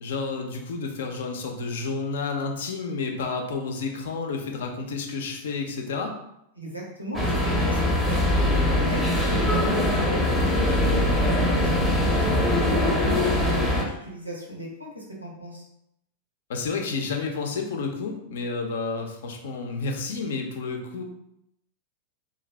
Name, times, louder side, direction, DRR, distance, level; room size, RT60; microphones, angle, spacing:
voice 1, 0.0-6.1 16.5-21.0, left 4 dB, 60° left, 3 dB, 0.5 m, -30 dB
voice 2, 6.5-9.0 9.3-12.4 12.7-15.6, equal, 90° right, -2 dB, 0.8 m, -35 dB
sound 1, 7.1-13.8, left 1 dB, ahead, 0.6 m, -22 dB
2.5 x 2.2 x 3.2 m, 0.79 s
figure-of-eight pair, 90°, 0 cm